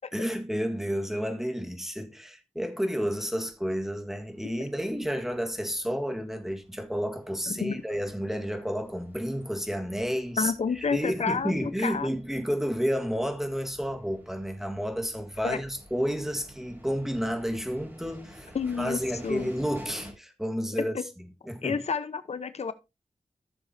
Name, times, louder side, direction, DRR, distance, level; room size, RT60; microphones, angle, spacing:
voice 1, 0.1-20.9 21.5-21.8, equal, 5° right, 1.8 m, -31 dB
sound 1, 3.1-20.1, equal, 20° right, 4.8 m, -52 dB
voice 2, 7.5-7.8 10.4-12.1 15.4-15.6 18.5-19.5 20.9-21.0 21.6-22.7, left 5 dB, 75° left, 1.0 m, -30 dB
14.0 x 7.0 x 2.8 m
wide cardioid pair, 105°, 11 cm